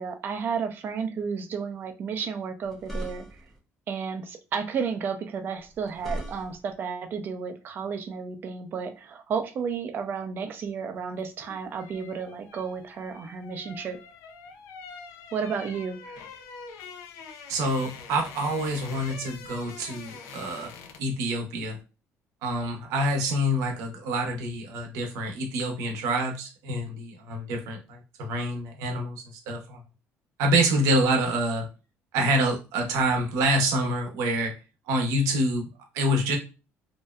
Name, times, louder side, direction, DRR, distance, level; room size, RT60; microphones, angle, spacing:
voice 1, 0.0-3.2 3.9-14.0 15.3-16.2, right 6 dB, 40° right, 7 dB, 0.4 m, -32 dB
sound 1, 2.6-3.6 5.6-6.7, equal, 5° left, 0.7 m, -37 dB
sound 2, 11.2-21.2 21.5-21.7, left 5 dB, 85° left, 0.4 m, -45 dB
voice 2, 17.5-20.7 21.0-21.8 22.4-29.8 30.4-31.7 32.1-34.5 34.9-35.7 35.9-36.4, right 1 dB, 85° right, 3 dB, 0.7 m, -26 dB
2.6 x 2.0 x 2.3 m, 0.31 s
cardioid pair, 140°, 5 cm